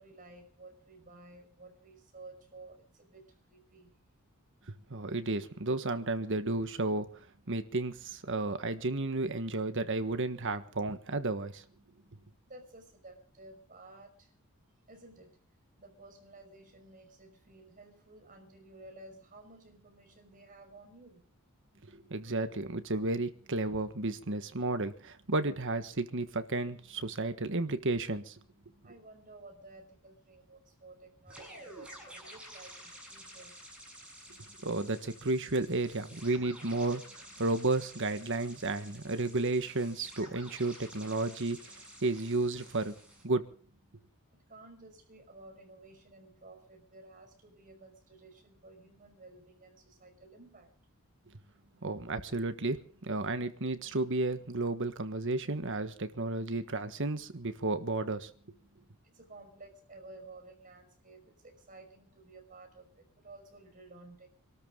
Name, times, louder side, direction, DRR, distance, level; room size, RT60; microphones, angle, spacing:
voice 1, 0.0-4.0 12.5-14.4 14.9-15.4 15.8-21.3 28.8-33.6 44.3-50.7 59.0-64.3, right 2 dB, 40° right, 5.5 m, -54 dB
voice 2, 4.7-7.1 7.5-11.6 21.8-28.4 34.6-42.9 43.2-43.5 51.8-58.3, right 2 dB, 60° right, 1.5 m, -32 dB
sound 1, 31.3-43.2, right 1 dB, 5° right, 7.9 m, -51 dB
26.5 x 13.0 x 3.8 m
head